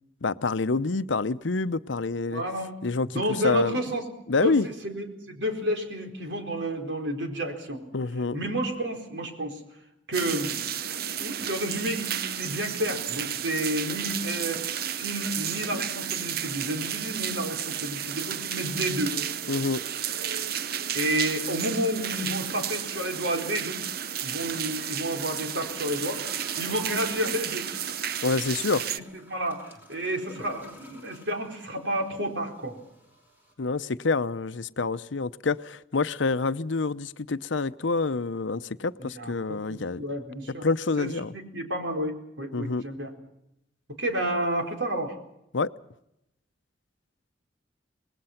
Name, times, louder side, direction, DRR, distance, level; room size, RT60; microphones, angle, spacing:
voice 1, 0.2-2.4 2.8-3.8 4.3-4.7 7.9-8.4 19.5-19.8 28.2-28.9 33.6-40.0 40.6-41.3 42.5-42.8 45.5-45.7, left 3 dB, 80° left, 0.7 m, -27 dB
voice 2, 2.3-2.7 3.1-4.0 4.4-7.8 8.3-9.6 10.1-19.2 20.9-23.8 24.2-26.2 26.6-27.7 28.8-32.8 39.0-40.7 41.0-43.1 44.0-45.2, equal, 70° right, 4.3 m, -31 dB
sound 1, 10.1-29.0, right 9 dB, 55° right, 0.8 m, -32 dB
sound 2, 25.5-33.5, equal, 10° right, 5.1 m, -49 dB
26.5 x 20.0 x 5.8 m
head